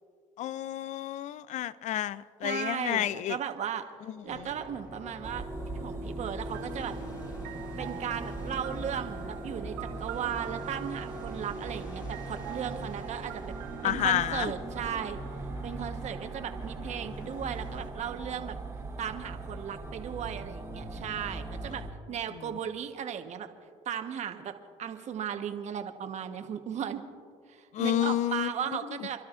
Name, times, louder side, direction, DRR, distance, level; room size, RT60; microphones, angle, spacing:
voice 1, 0.4-3.4 4.3-4.5 13.8-14.5 27.7-28.5 29.0-29.1, left 11 dB, 60° left, 0.5 m, -30 dB
voice 2, 2.4-3.8 4.2-5.4 5.7-6.9 7.8-13.5 13.8-15.2 15.6-18.5 19.0-23.5 23.8-24.5 24.8-27.0 27.5-29.2, right 8 dB, 55° right, 1.2 m, -36 dB
sound 1, 4.3-17.9, left 1 dB, 30° left, 2.6 m, -45 dB
sound 2, 5.2-21.9, right 2 dB, 20° right, 1.8 m, -40 dB
sound 3, 6.5-16.3, right 14 dB, 90° right, 0.6 m, -46 dB
30.0 x 12.0 x 2.5 m
supercardioid pair, 75°, 14 cm